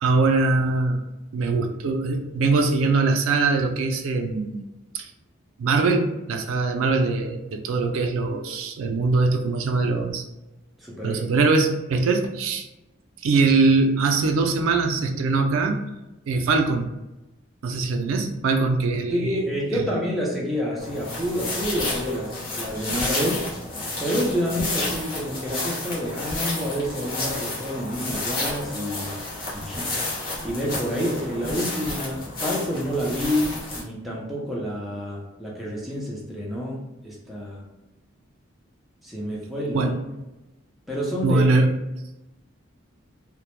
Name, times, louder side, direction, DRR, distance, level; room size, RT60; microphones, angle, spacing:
voice 1, 0.0-1.0 1.3-4.6 4.9-5.1 5.6-10.2 11.0-12.7 13.2-15.8 16.3-16.9 17.6-19.4 19.7-19.9 39.7-39.9 41.2-41.7, right 3 dB, 85° right, 4 dB, 0.3 m, -22 dB
voice 2, 10.8-11.2 19.1-23.5 24.0-29.2 29.5-29.9 30.4-37.6 39.0-39.9 40.9-41.6, equal, ahead, -5 dB, 0.4 m, -28 dB
sound 1, 20.8-33.8, left 2 dB, 45° left, 0.7 m, -31 dB
2.1 x 2.0 x 2.9 m, 0.97 s
head